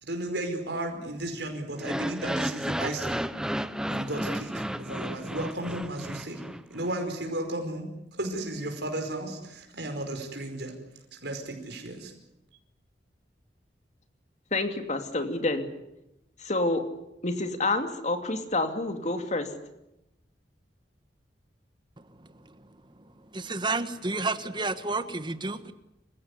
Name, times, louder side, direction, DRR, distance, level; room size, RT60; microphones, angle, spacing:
voice 1, 0.0-3.2 3.9-6.4 6.7-7.9 8.2-10.7 11.1-12.1, right 1 dB, 75° right, 3 dB, 5.0 m, -34 dB
sound 1, 1.7-6.9, equal, 5° right, 0.9 m, -32 dB
voice 2, 14.5-15.7 16.4-16.8 17.2-19.5, left 2 dB, 40° left, 7 dB, 2.7 m, -28 dB
voice 3, 23.3-25.7, right 3 dB, 25° right, 11 dB, 1.5 m, -30 dB
27.5 x 16.0 x 9.9 m, 0.88 s
head